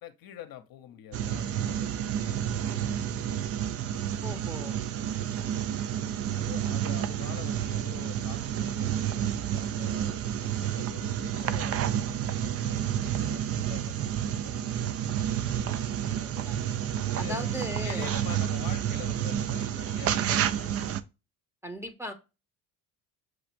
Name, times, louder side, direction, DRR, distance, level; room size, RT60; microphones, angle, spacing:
voice 1, 0.0-3.4 6.3-14.6 16.1-20.9, left 11 dB, 55° left, 0.8 m, -46 dB
sound 1, 1.1-21.0, right 10 dB, 40° right, 0.4 m, -30 dB
voice 2, 4.2-4.8 16.1-16.6 17.2-18.1 21.6-22.1, equal, 5° right, 0.7 m, -38 dB
6.3 x 2.4 x 2.9 m
supercardioid pair, 85°, 41 cm